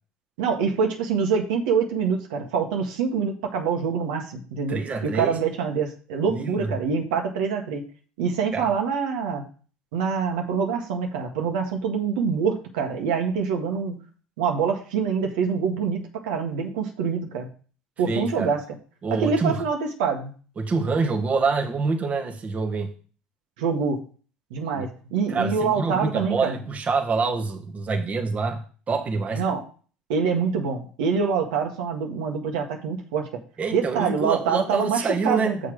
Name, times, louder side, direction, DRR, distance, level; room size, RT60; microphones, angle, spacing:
voice 1, 0.4-7.8 8.2-9.4 9.9-14.0 14.4-17.5 18.0-18.6 19.1-20.3 23.6-24.0 24.5-26.5 29.3-29.6 30.1-33.3 33.7-35.6, right 6 dB, 80° right, 1.7 m, -25 dB
voice 2, 4.7-5.4 6.3-6.7 8.5-8.7 18.1-18.5 19.0-19.7 20.6-22.9 24.7-24.9 25.3-29.4 33.6-35.6, right 4 dB, 35° right, 1.3 m, -26 dB
6.6 x 5.4 x 5.0 m
supercardioid pair, 85°, 4 cm